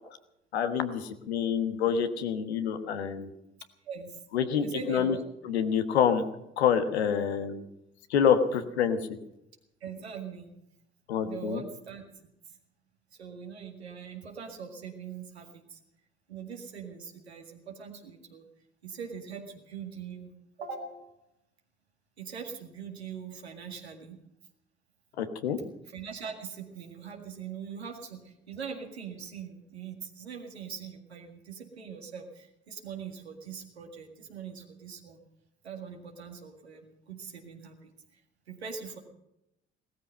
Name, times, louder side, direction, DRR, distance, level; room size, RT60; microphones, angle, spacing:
voice 1, 0.5-3.3 4.3-5.2 5.4-6.2 6.6-7.6 8.1-9.0 11.1-11.6 25.2-25.6, left 7 dB, 80° left, 9 dB, 1.2 m, -27 dB
voice 2, 3.8-4.2 4.6-5.2 9.8-10.5 11.2-12.0 12.5-12.6 13.1-15.8 16.3-18.4 18.8-20.3 20.6-21.2 22.2-24.2 25.9-35.2 35.6-38.2 38.5-39.0, right 6 dB, 85° right, 2 dB, 2.0 m, -42 dB
18.5 x 13.5 x 5.6 m, 0.84 s
figure-of-eight pair, 40°, 32 cm